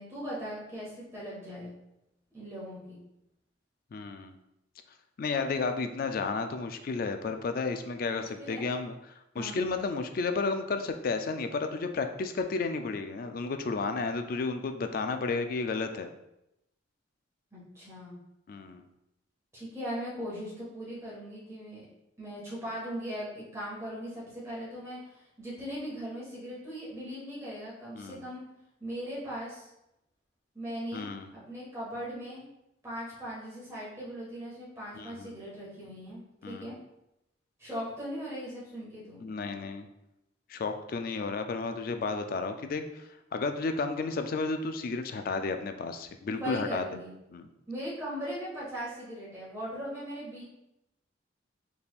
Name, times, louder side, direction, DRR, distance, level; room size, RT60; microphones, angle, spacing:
voice 1, 0.0-1.7 2.3-3.0 8.1-8.6 9.3-9.6 17.5-18.2 19.5-21.8 22.2-25.0 25.4-28.4 28.8-29.7 30.5-31.1 31.3-32.5 32.8-36.8 37.6-39.2 46.3-47.1 47.7-50.4, equal, 15° right, -7 dB, 1.5 m, -39 dB
voice 2, 3.9-4.4 5.2-8.9 9.3-16.1 18.5-18.9 28.0-28.2 30.9-31.3 35.0-35.3 36.4-36.7 39.2-39.9 40.5-46.8 47.3-47.5, left 4 dB, 50° left, 7 dB, 0.3 m, -32 dB
4.1 x 3.4 x 2.4 m, 0.86 s
head